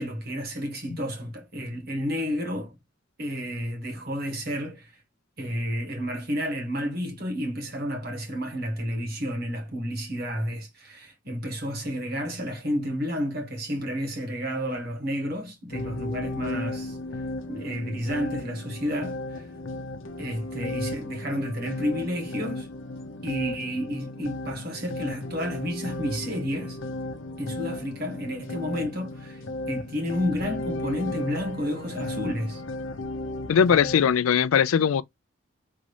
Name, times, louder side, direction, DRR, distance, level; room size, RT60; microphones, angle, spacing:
voice 1, 0.0-2.8 3.2-5.0 5.4-17.0 17.5-19.5 20.2-22.7 23.2-26.8 27.4-29.4 29.7-32.6, equal, 50° right, 1.4 m, -31 dB
sound 1, 15.7-34.1, left 2 dB, 70° left, 0.7 m, -35 dB
voice 2, 33.5-35.0, left 7 dB, 90° left, 0.4 m, -20 dB
3.7 x 2.5 x 3.2 m
head